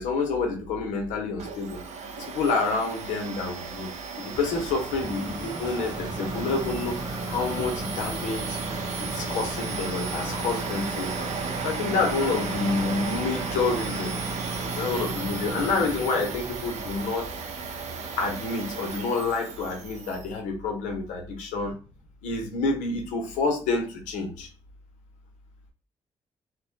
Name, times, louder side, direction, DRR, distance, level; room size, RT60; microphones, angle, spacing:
voice 1, 0.0-1.8 2.2-3.9 4.4-8.6 9.2-11.3 11.6-14.2 14.7-17.3 18.2-21.7 22.2-24.5, left 4 dB, 85° left, 3 dB, 0.7 m, -28 dB
Domestic sounds home sounds, 1.4-20.3, right 5 dB, 65° right, 0.5 m, -36 dB
sound 1, 4.3-19.0, right 2 dB, 35° right, 0.7 m, -35 dB
2.1 x 2.1 x 2.7 m, 0.34 s
supercardioid pair, 55°, 12 cm